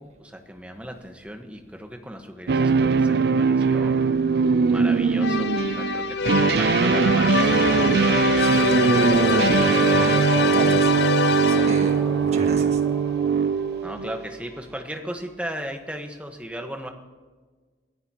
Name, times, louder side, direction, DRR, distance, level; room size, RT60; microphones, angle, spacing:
voice 1, 0.0-4.0 4.7-5.5 5.8-7.5 13.8-16.9, equal, 5° right, 4 dB, 1.2 m, -36 dB
sound 1, 2.5-14.4, right 5 dB, 60° right, 0.4 m, -21 dB
sound 2, 5.2-12.0, left 5 dB, 70° left, 0.5 m, -24 dB
voice 2, 8.4-10.9 11.4-12.8, right 1 dB, 40° right, 4 dB, 1.5 m, -32 dB
sound 3, 9.1-14.8, equal, 10° left, 4.9 m, -39 dB
23.0 x 15.0 x 2.9 m, 1.4 s
head